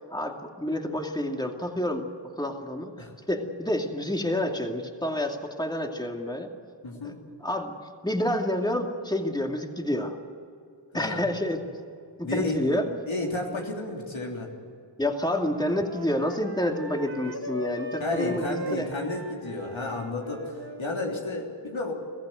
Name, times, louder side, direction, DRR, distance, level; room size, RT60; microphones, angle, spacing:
voice 1, 0.1-2.1 2.4-2.9 3.3-6.5 7.0-7.1 7.4-7.7 8.0-10.1 10.9-11.6 12.2-12.9 15.0-18.9, left 1 dB, 10° left, 3 dB, 2.4 m, -28 dB
voice 2, 6.8-7.2 10.9-11.2 12.2-14.5 18.0-21.9, left 2 dB, 80° left, -1 dB, 3.5 m, -32 dB
Wind instrument woodwind instrument, 15.4-21.0, right 3 dB, 55° right, 2.0 m, -39 dB
22.5 x 15.0 x 9.4 m, 2.4 s
cardioid pair, 40°, 46 cm